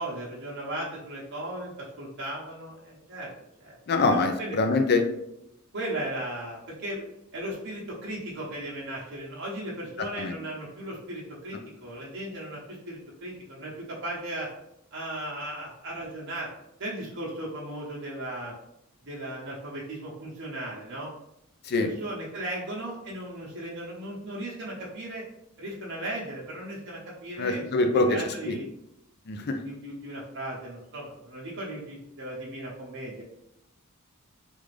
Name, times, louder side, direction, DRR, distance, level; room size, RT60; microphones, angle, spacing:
voice 1, 0.0-3.3 3.6-4.6 5.7-7.0 7.3-14.5 14.9-16.5 16.8-18.5 19.0-21.1 21.8-25.2 25.6-28.7 29.6-33.2, right 1 dB, 55° right, -4 dB, 0.9 m, -36 dB
voice 2, 3.9-5.0 10.2-10.3 21.7-21.9 27.4-28.5 29.3-29.6, left 3 dB, 50° left, 5 dB, 0.5 m, -24 dB
3.5 x 2.5 x 3.2 m, 0.83 s
head